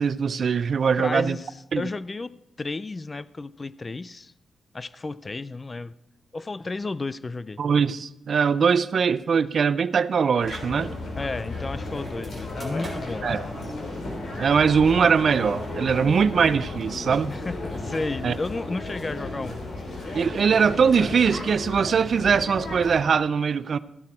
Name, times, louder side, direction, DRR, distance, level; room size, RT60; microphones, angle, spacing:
voice 1, 0.0-1.4 1.7-1.8 7.6-10.9 13.2-13.4 14.4-17.3 18.2-18.3 20.1-23.8, right 6 dB, 55° right, 0.4 m, -21 dB
voice 2, 0.9-2.3 2.6-4.3 4.7-5.9 6.3-7.6 11.2-13.5 17.3-19.6, left 3 dB, 30° left, 0.4 m, -32 dB
sound 1, 10.4-23.0, left 2 dB, 65° left, 3.0 m, -34 dB
sound 2, 11.9-22.1, right 1 dB, 5° right, 3.1 m, -49 dB
13.5 x 10.5 x 4.3 m
cardioid pair, 105°, 0 cm